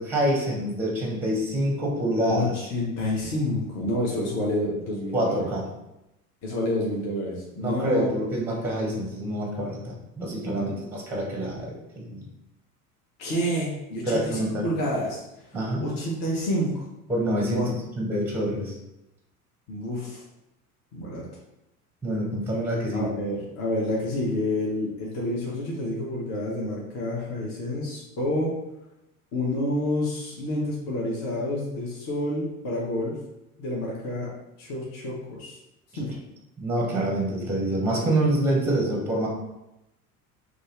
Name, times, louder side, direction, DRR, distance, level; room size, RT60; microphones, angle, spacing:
voice 1, 0.0-2.6 5.1-5.6 7.6-12.3 14.1-14.6 15.5-15.9 17.1-18.8 22.0-23.1 36.6-39.3, right 1 dB, 5° right, -2 dB, 0.7 m, -26 dB
voice 2, 2.3-5.5 6.4-8.1 10.5-10.7 13.2-15.2 15.8-16.8 17.3-17.7 19.7-20.2 20.9-21.2 22.9-28.6 29.3-33.2 33.6-34.3 34.6-35.6 35.9-36.1 38.7-38.8, left 1 dB, 35° left, -4 dB, 0.8 m, -29 dB
2.5 x 2.4 x 3.1 m, 0.90 s
figure-of-eight pair, 75°, 45 cm